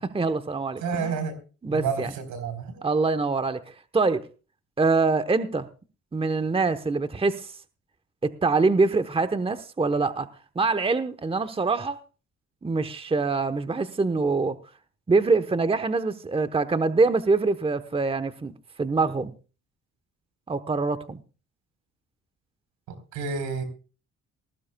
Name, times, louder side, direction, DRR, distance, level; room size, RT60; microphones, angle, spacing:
voice 1, 0.0-1.1 1.6-2.1 2.8-3.6 3.9-4.3 4.8-5.7 6.1-7.5 8.2-10.3 10.5-12.0 12.6-14.6 15.1-18.5 18.8-19.3 20.5-21.2, right 3 dB, 20° right, 1.0 m, -24 dB
voice 2, 0.8-1.4 1.7-2.8 23.1-23.6, right 5 dB, 90° right, 4.0 m, -29 dB
19.5 x 15.5 x 2.3 m
cardioid pair, 90°, 30 cm